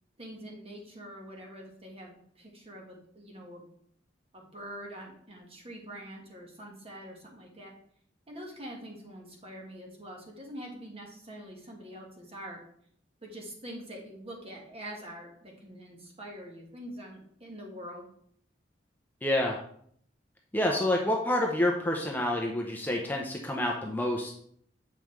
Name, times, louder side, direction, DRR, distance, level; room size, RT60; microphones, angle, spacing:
voice 1, 0.2-3.7 4.3-7.7 8.3-12.6 13.2-18.1, equal, 30° right, 0 dB, 1.5 m, -45 dB
voice 2, 19.2-19.6 20.5-24.3, left 1 dB, 10° left, 0 dB, 0.6 m, -28 dB
7.3 x 5.4 x 3.2 m, 0.64 s
head